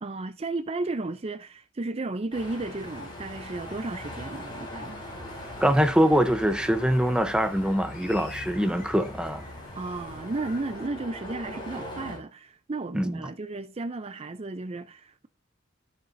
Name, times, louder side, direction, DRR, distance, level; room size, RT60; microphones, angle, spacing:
voice 1, 0.0-5.0 9.7-15.3, right 2 dB, 30° right, 0.5 m, -34 dB
sound 1, 2.3-12.2, left 1 dB, 25° left, 4.2 m, -41 dB
sound 2, 2.8-10.9, left 2 dB, 45° left, 3.4 m, -47 dB
voice 2, 5.6-9.4 12.9-13.1, equal, 5° right, 0.8 m, -23 dB
14.0 x 6.5 x 2.6 m
head